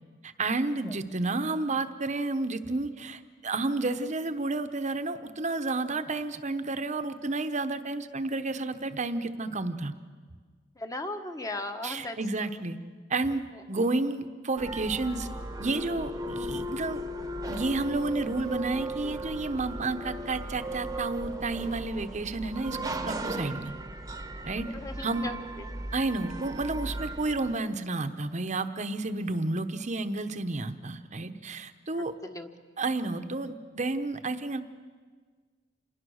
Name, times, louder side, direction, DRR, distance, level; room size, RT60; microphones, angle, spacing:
voice 1, 0.2-9.9 11.8-12.8 13.1-15.3 15.6-17.0 17.4-23.7 24.4-24.7 25.0-25.3 25.9-32.1 32.8-34.6, right 2 dB, 40° right, 10 dB, 1.0 m, -31 dB
voice 2, 10.8-12.6 24.7-25.6 32.2-32.5, left 2 dB, 20° left, 6 dB, 1.4 m, -37 dB
sound 1, 14.6-27.6, right 1 dB, 20° right, 1.1 m, -37 dB
27.5 x 20.0 x 6.5 m, 1.5 s
head